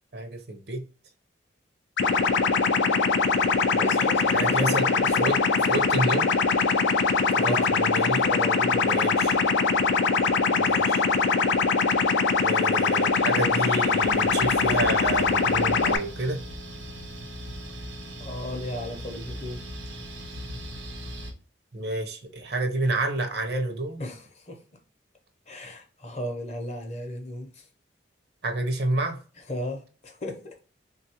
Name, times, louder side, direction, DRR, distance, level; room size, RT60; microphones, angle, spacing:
voice 1, 0.1-0.8 3.7-3.9 4.3-4.9 5.2-5.4 5.7-6.3 7.3-8.3 8.8-9.4 10.5-11.0 12.4-16.4 21.7-24.0 28.4-29.2, right 2 dB, 55° right, 0.6 m, -29 dB
sound 1, 2.0-16.0, left 4 dB, 75° left, 0.4 m, -22 dB
voice 2, 3.8-5.4 7.4-7.7 8.2-9.4 18.2-19.6 24.0-24.6 25.5-27.7 29.4-30.5, left 1 dB, 35° left, 0.6 m, -35 dB
sound 2, 14.0-21.3, equal, 90° right, 0.8 m, -39 dB
3.4 x 2.3 x 2.8 m
head